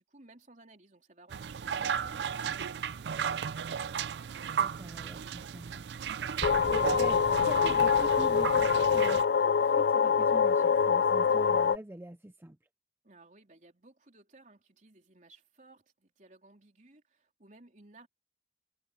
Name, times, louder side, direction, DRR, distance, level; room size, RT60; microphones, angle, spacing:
voice 1, 0.0-3.9 13.0-18.1, right 2 dB, 45° right, 3.7 m, -58 dB
sound 1, 1.3-9.2, right 7 dB, 70° right, 0.4 m, -35 dB
sound 2, 2.0-3.4 6.4-9.1, left 1 dB, 20° left, 0.8 m, -47 dB
voice 2, 4.6-5.9 6.7-12.6, right 1 dB, 15° right, 0.5 m, -44 dB
sound 3, 6.4-11.8, left 6 dB, 65° left, 0.4 m, -25 dB
head